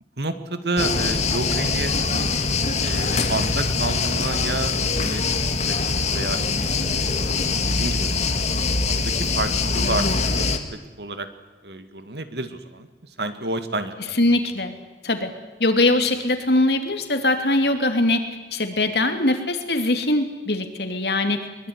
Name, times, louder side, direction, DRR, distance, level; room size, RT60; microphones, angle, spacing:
voice 1, 0.2-2.3 2.8-4.7 5.0-5.2 5.7-5.8 6.1-7.3 7.7-8.3 8.8-11.3 11.6-13.9, right 2 dB, 65° right, 9 dB, 2.2 m, -30 dB
sound 1, 0.8-10.6, left 4 dB, 40° left, 2.0 m, -23 dB
voice 2, 14.2-14.7 15.0-15.3 15.6-18.2 18.5-21.7, left 2 dB, 65° left, 6 dB, 3.0 m, -21 dB
22.5 x 22.0 x 9.9 m, 1.2 s
head